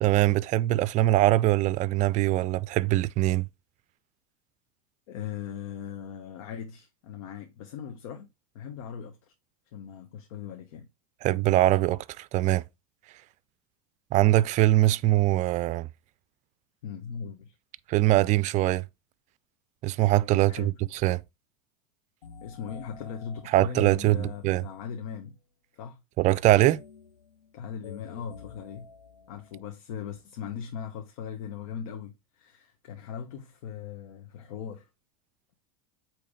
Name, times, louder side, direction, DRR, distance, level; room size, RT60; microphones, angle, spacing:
voice 1, 0.0-3.5 11.2-12.6 14.1-15.9 17.9-18.8 19.8-20.7 21.0-21.2 23.5-24.6 26.2-26.8, right 16 dB, 40° right, 0.5 m, -22 dB
voice 2, 5.1-8.3 8.5-9.3 9.7-10.9 16.8-17.5 20.5-20.7 22.4-25.4 25.7-26.0 27.5-28.9 29.3-34.9, left 8 dB, 65° left, 1.1 m, -39 dB
sound 1, 22.2-25.2 26.4-29.7, left 5 dB, 85° left, 0.9 m, -50 dB
8.6 x 3.1 x 4.9 m
hypercardioid pair, 90°, 19 cm